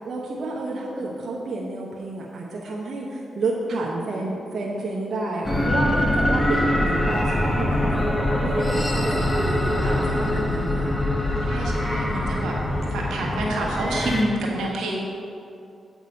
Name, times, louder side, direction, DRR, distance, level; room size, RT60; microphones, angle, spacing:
voice 1, 0.0-10.9 14.1-14.3, right 2 dB, 60° right, -3 dB, 1.0 m, -30 dB
sound 1, 5.4-14.3, left 1 dB, 15° left, 1.4 m, -23 dB
voice 2, 9.8-10.2 11.4-12.6 12.9-15.0, right 1 dB, 85° right, -2 dB, 1.5 m, -28 dB
8.1 x 6.1 x 5.2 m, 2.6 s
cardioid pair, 55°, 0 cm